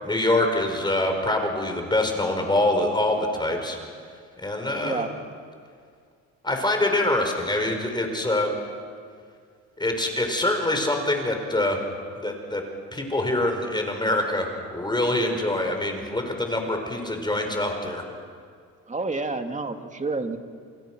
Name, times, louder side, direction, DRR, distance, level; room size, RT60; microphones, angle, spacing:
voice 1, 0.0-3.8 4.4-5.1 6.4-8.5 9.8-11.8 12.2-12.6 12.9-18.0, left 1 dB, 15° left, 4 dB, 5.2 m, -25 dB
voice 2, 18.9-20.4, right 3 dB, 25° right, 5 dB, 2.4 m, -29 dB
28.0 x 27.5 x 6.3 m, 2.1 s
cardioid pair, 90°, 30 cm